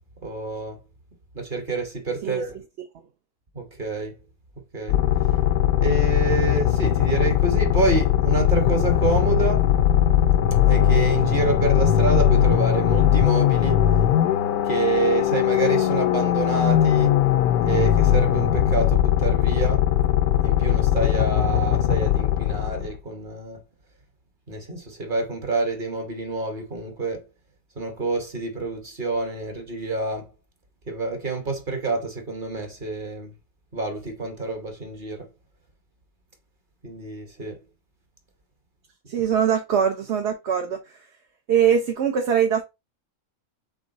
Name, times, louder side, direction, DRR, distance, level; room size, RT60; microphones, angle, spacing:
voice 1, 0.2-0.8 1.3-2.6 3.5-4.1 4.7-5.0 5.8-9.7 10.7-13.8 14.6-17.2 17.6-19.9 20.4-23.6 24.5-27.3 27.8-30.3 30.9-33.3 33.7-35.3 36.8-37.6, right 3 dB, 40° right, 1.2 m, -27 dB
sound 1, 4.9-22.9, left 11 dB, 85° left, 1.1 m, -20 dB
voice 2, 39.1-40.8 41.5-42.6, right 8 dB, 55° right, 0.9 m, -22 dB
3.9 x 3.6 x 3.8 m
omnidirectional pair, 1.5 m